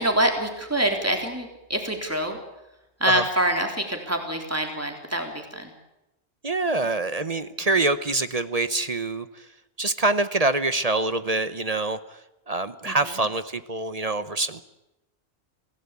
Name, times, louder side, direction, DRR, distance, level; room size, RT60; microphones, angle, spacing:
voice 1, 0.0-2.4 3.0-5.7 12.9-13.1, right 1 dB, 15° right, 3 dB, 3.8 m, -25 dB
voice 2, 6.4-9.5 9.8-12.0 12.5-14.6, right 2 dB, 35° right, 12 dB, 1.0 m, -25 dB
27.0 x 17.5 x 8.5 m, 0.94 s
omnidirectional pair, 1.1 m